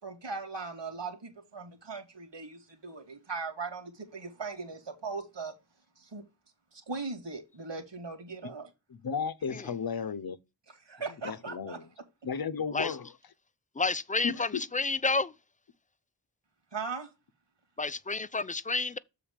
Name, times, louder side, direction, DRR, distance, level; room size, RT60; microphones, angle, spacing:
voice 1, 0.0-5.5 6.0-6.2 6.7-8.7 10.8-11.8 16.7-17.1, right 4 dB, 85° right, 2.3 m, -39 dB
voice 2, 9.0-10.4 11.2-11.8 12.2-13.1 14.2-14.6, left 6 dB, 60° left, 0.7 m, -34 dB
voice 3, 13.8-15.3 17.8-19.0, left 3 dB, 20° left, 0.4 m, -30 dB
7.3 x 4.0 x 5.1 m
wide cardioid pair, 80°, 42 cm